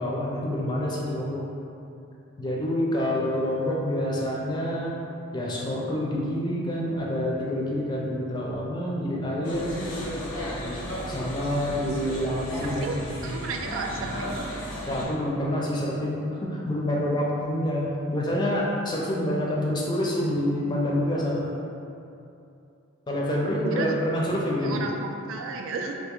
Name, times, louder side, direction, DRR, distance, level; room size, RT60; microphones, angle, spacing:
voice 1, 0.0-1.4 2.4-5.0 5.3-9.7 11.1-13.4 14.9-21.5 23.1-24.8, left 1 dB, 20° left, -4 dB, 0.4 m, -27 dB
sound 1, 9.4-15.1, equal, 90° left, 0.8 m, -34 dB
voice 2, 13.2-14.2 23.7-23.9 24.6-26.0, right 4 dB, 70° right, 2 dB, 0.3 m, -33 dB
2.8 x 2.5 x 3.7 m, 2.7 s
head